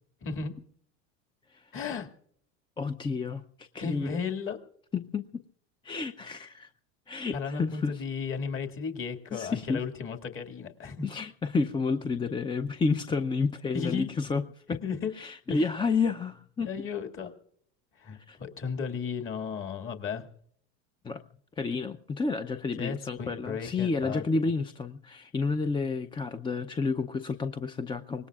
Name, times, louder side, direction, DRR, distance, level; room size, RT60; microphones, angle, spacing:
voice 1, 0.2-0.5 1.7-2.1 3.8-4.6 7.3-11.0 13.7-14.1 14.7-15.1 15.5-15.7 16.6-17.3 18.0-20.3 22.8-24.2, left 6 dB, 35° left, 5 dB, 2.1 m, -34 dB
voice 2, 2.8-4.2 4.9-5.4 5.8-6.7 7.1-8.0 9.3-9.8 11.0-14.4 14.7-14.8 15.1-16.7 18.1-18.4 21.0-21.2 21.6-28.3, left 4 dB, 15° left, 9 dB, 0.6 m, -30 dB
25.0 x 19.5 x 2.4 m, 0.65 s
hypercardioid pair, 100°, 35 cm